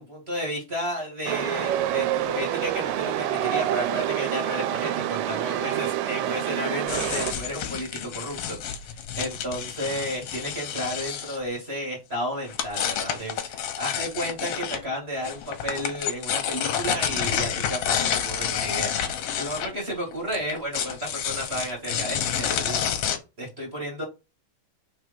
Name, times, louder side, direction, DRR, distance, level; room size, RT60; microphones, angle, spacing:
voice 1, 0.0-8.6 8.8-22.9 23.4-24.0, equal, 25° right, -2 dB, 1.4 m, -32 dB
Chatter / Subway metro underground, 1.3-7.3, right 12 dB, 80° right, 2.2 m, -27 dB
sound 1, 6.9-11.4 12.5-14.8 15.2-23.2, left 9 dB, 70° left, 1.6 m, -29 dB
4.7 x 4.3 x 5.2 m, 0.27 s
omnidirectional pair, 4.0 m